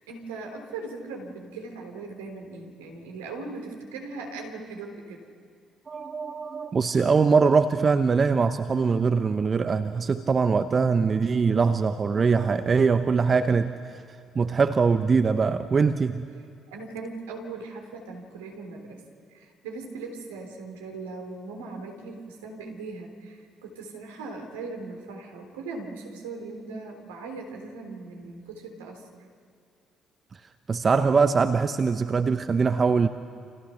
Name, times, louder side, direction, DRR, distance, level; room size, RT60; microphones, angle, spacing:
voice 1, 0.0-5.2 16.7-19.0 19.3-29.3, right 3 dB, 75° right, 3 dB, 3.7 m, -39 dB
voice 2, 5.9-14.0 14.3-16.2 30.7-33.1, right 5 dB, 35° right, 10 dB, 1.0 m, -22 dB
29.5 x 27.0 x 5.8 m, 2.4 s
figure-of-eight pair, 45°, 0 cm